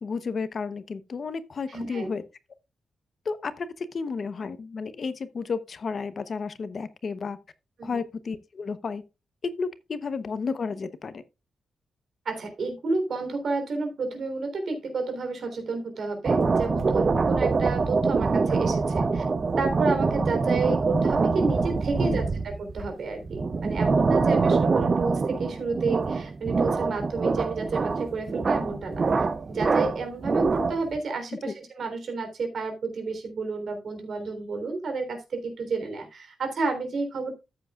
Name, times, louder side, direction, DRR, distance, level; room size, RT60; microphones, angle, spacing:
voice 1, 0.0-2.2 3.2-7.4 7.8-9.0 9.4-11.2 22.0-22.2 31.4-31.5, left 5 dB, 45° left, 0.8 m, -32 dB
voice 2, 1.7-2.1 7.8-8.0 12.3-19.2 19.6-37.4, right 3 dB, 55° right, 3.5 m, -31 dB
sound 1, 16.2-31.0, right 4 dB, 35° right, 0.6 m, -24 dB
14.0 x 7.9 x 2.4 m
wide cardioid pair, 150°, 0 cm